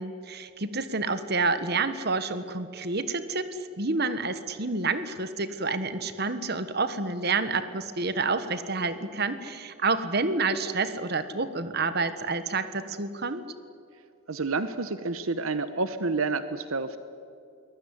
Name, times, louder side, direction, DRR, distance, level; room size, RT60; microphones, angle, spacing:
voice 1, 0.0-13.4, right 3 dB, 50° right, 12 dB, 1.4 m, -29 dB
voice 2, 14.3-17.0, right 3 dB, 75° right, 12 dB, 1.0 m, -29 dB
22.5 x 20.5 x 9.7 m, 2.5 s
head